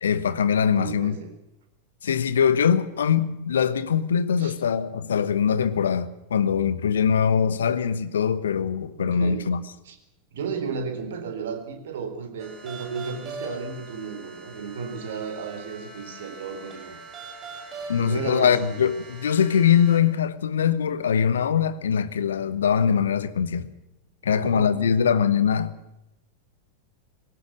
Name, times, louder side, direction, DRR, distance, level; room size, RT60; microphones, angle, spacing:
voice 1, 0.0-1.2 2.0-9.6 17.9-23.7 24.2-26.0, left 7 dB, 65° left, 1.2 m, -22 dB
voice 2, 0.7-1.4 4.4-4.5 9.0-9.5 9.9-10.0 10.3-17.0 18.0-18.8 24.2-25.1, right 5 dB, 60° right, 3.9 m, -34 dB
sound 1, 12.4-20.0, right 3 dB, 25° right, 6.1 m, -42 dB
20.5 x 18.0 x 7.5 m
figure-of-eight pair, 90°, 0 cm